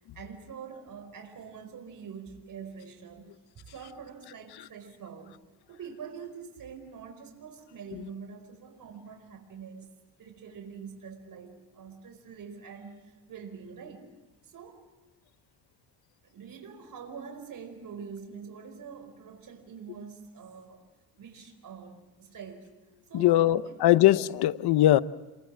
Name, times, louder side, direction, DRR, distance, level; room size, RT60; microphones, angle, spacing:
voice 1, 0.1-3.3 3.6-5.4 5.7-9.9 10.2-14.0 14.4-14.9 16.3-20.9 21.2-22.8 23.1-24.2, right 6 dB, 60° right, 4.8 m, -45 dB
voice 2, 23.1-25.0, left 14 dB, 90° left, 0.9 m, -21 dB
28.0 x 24.0 x 7.6 m
cardioid pair, 100°, 38 cm